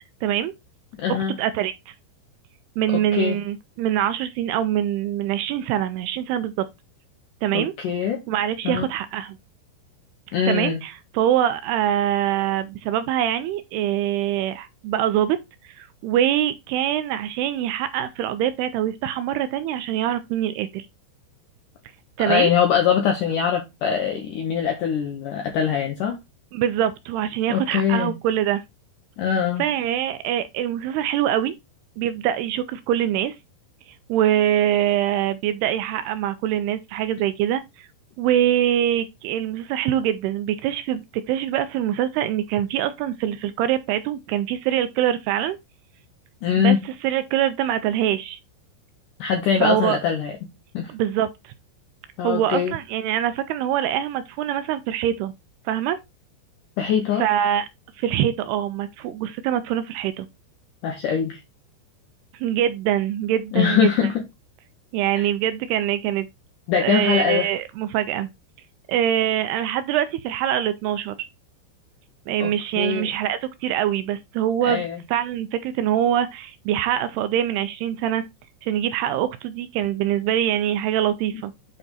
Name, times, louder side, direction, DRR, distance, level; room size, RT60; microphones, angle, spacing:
voice 1, 0.2-0.5 1.1-1.9 2.8-6.7 7.4-7.7 8.3-9.4 10.5-15.4 15.6-20.9 22.2-22.5 26.5-28.6 29.6-31.5 32.0-33.4 34.1-37.9 38.2-45.6 46.5-46.8 47.0-48.4 49.6-50.0 50.9-51.5 52.2-55.3 55.7-56.0 57.2-57.7 58.0-60.3 62.3-63.9 64.9-66.3 66.8-68.3 68.9-71.3 72.3-74.8 75.1-78.2 78.6-81.5, right 11 dB, 80° right, 2.4 m, -24 dB
voice 2, 1.0-1.4 2.9-3.4 7.5-8.2 8.6-8.9 10.3-10.8 22.3-26.2 27.5-28.2 29.2-29.7 46.4-46.8 49.2-50.3 50.7-50.9 52.2-52.7 56.8-57.2 60.8-61.4 63.5-64.2 65.2-65.3 66.7-67.5 72.4-73.1 74.6-75.0, left 8 dB, 80° left, 1.9 m, -22 dB
8.3 x 3.4 x 4.0 m
omnidirectional pair, 5.0 m